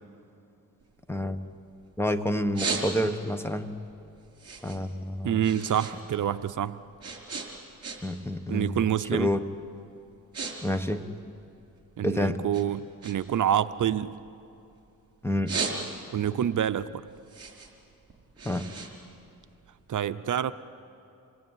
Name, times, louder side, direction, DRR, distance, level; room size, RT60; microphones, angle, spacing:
sound 1, 0.8-1.9 2.3-3.4 3.8-6.0 6.3-8.3 8.6-8.9 9.5-9.7 10.0-10.5 10.8-12.0 12.5-14.8 15.2-16.3 16.7-19.8, right 4 dB, 45° right, 4.6 m, -36 dB
voice 1, 1.1-1.5 2.0-3.7 4.6-5.4 8.0-8.9 9.1-9.4 10.6-11.1 12.0-12.4 15.2-15.6 18.4-18.7, left 1 dB, 5° left, 9 dB, 1.3 m, -28 dB
voice 2, 5.2-6.8 8.5-9.3 12.0-14.1 16.1-17.0 19.9-20.5, right 10 dB, 60° right, 12 dB, 0.7 m, -27 dB
27.5 x 20.0 x 9.2 m, 2.6 s
cardioid pair, 90°, 34 cm